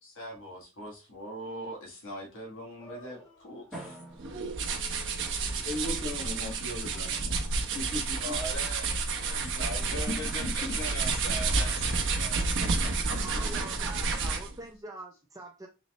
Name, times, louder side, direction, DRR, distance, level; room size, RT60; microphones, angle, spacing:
voice 1, 0.0-4.0 8.2-8.9 9.2-12.5, equal, 65° left, 1.4 m, -41 dB
sound 1, 2.8-9.2, right 1 dB, 20° left, 1.7 m, -56 dB
Drum, 3.7-6.0, right 1 dB, ahead, 1.8 m, -48 dB
sound 2, 4.2-14.6, right 4 dB, 60° right, 0.7 m, -30 dB
voice 2, 5.6-7.4 7.7-8.4 10.1-10.7 12.6-13.2, left 2 dB, 35° left, 1.7 m, -37 dB
voice 3, 13.2-15.7, right 2 dB, 15° right, 0.5 m, -44 dB
3.9 x 3.1 x 3.0 m
head